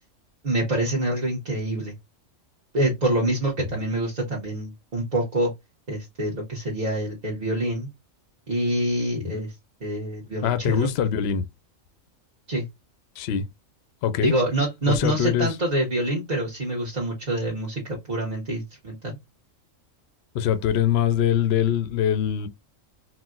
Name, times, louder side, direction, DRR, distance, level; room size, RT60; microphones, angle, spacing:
voice 1, 0.4-1.9 2.7-5.5 5.9-7.9 8.5-10.9 12.5-12.7 14.2-19.2, right 1 dB, 35° right, 1.0 m, -26 dB
voice 2, 10.4-11.4 13.2-13.4 14.0-14.3 14.9-15.5 20.3-22.5, left 9 dB, 65° left, 0.7 m, -23 dB
4.1 x 2.2 x 2.3 m
omnidirectional pair, 1.4 m